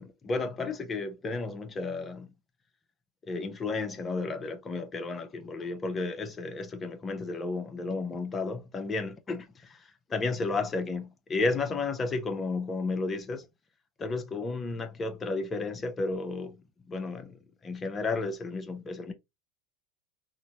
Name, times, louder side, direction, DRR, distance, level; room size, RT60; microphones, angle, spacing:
voice 1, 0.0-2.3 3.3-13.5 14.0-19.1, left 3 dB, 25° left, 0.7 m, -33 dB
3.6 x 2.1 x 2.8 m
hypercardioid pair, 90°, 0 cm